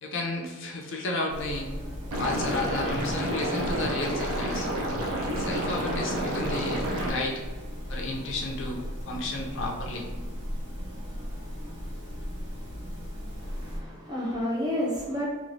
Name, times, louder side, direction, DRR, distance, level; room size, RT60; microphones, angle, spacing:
voice 1, 0.0-1.7 2.2-4.7 5.4-7.4 7.9-10.1, left 2 dB, 55° left, -1 dB, 0.5 m, -32 dB
sound 1, 1.3-13.8, equal, 55° right, 1.1 m, -37 dB
Liquid, 2.1-7.1, right 1 dB, 85° right, 0.6 m, -30 dB
voice 2, 13.4-15.2, left 1 dB, 20° right, -4 dB, 0.6 m, -30 dB
3.0 x 2.4 x 2.7 m, 1.4 s
head